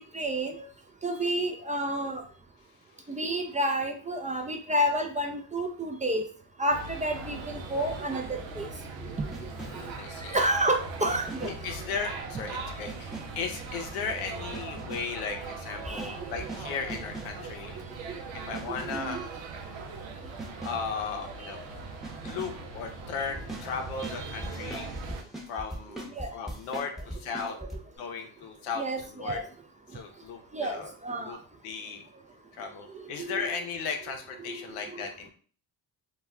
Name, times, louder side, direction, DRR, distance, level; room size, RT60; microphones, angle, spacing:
voice 1, 0.1-0.6 1.0-2.2 3.1-6.2 6.6-8.7 10.3-11.5 12.2-12.3 15.9-16.2 18.1-18.2 18.8-19.2 26.2-26.3 28.8-29.4 30.5-31.4 33.2-33.5 34.4-34.6 34.9-35.0, right 1 dB, 15° right, 4 dB, 0.4 m, -30 dB
sound 1, 6.7-25.2, right 3 dB, 85° right, 0.6 m, -40 dB
sound 2, 9.3-10.0 11.0-11.8 12.9-13.5 14.5-15.2 15.9-17.5 18.5-19.2 20.4-20.9 22.0-22.7 23.4-27.8, right 1 dB, ahead, 0.8 m, -41 dB
voice 2, 9.6-10.4 11.4-17.8 18.5-19.2 20.6-21.6 22.2-24.9 25.5-27.6 28.0-28.8 29.1-29.4 29.9-30.9 31.2-31.4 31.6-32.0 32.6-35.3, left 5 dB, 90° left, 4 dB, 0.6 m, -36 dB
2.3 x 2.1 x 3.5 m, 0.43 s
supercardioid pair, 55°, 47 cm